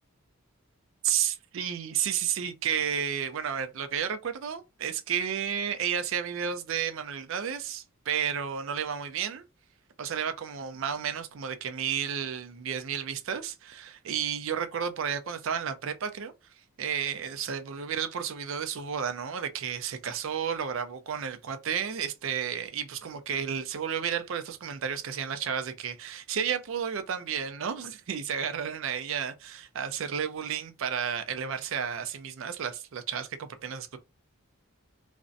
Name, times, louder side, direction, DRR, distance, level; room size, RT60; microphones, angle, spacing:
voice 1, 1.0-9.4 10.0-16.3 16.8-34.0, right 8 dB, 60° right, 0.4 m, -32 dB
2.5 x 2.1 x 2.5 m
head